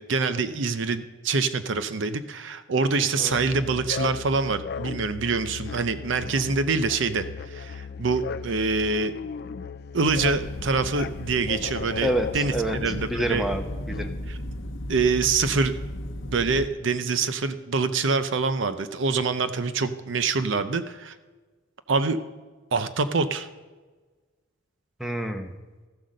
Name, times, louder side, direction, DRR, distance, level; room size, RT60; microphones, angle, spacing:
voice 1, 0.0-9.1 9.9-13.4 14.3-14.4 14.9-15.7 16.3-21.1 21.9-22.2 22.7-23.5, right 4 dB, 65° right, 11 dB, 0.6 m, -25 dB
sound 1, 3.3-14.1, left 5 dB, 50° left, 0.3 m, -36 dB
sound 2, 10.1-16.7, left 1 dB, 70° left, 0.7 m, -35 dB
voice 2, 12.0-12.8 13.0-14.1 25.0-25.5, right 1 dB, ahead, 5 dB, 0.8 m, -28 dB
14.0 x 7.8 x 6.4 m, 1.3 s
head